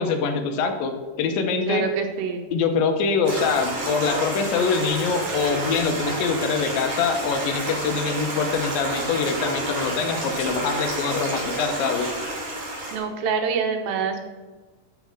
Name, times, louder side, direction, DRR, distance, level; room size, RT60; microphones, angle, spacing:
voice 1, 0.0-1.8 2.5-12.1, left 5 dB, 85° left, 6 dB, 2.6 m, -24 dB
voice 2, 1.7-2.5 12.9-14.2, right 5 dB, 85° right, 4 dB, 2.8 m, -26 dB
Stream, 3.2-13.0, right 1 dB, 65° right, 4.6 m, -29 dB
11.5 x 4.1 x 6.3 m, 1.3 s
omnidirectional pair, 4.1 m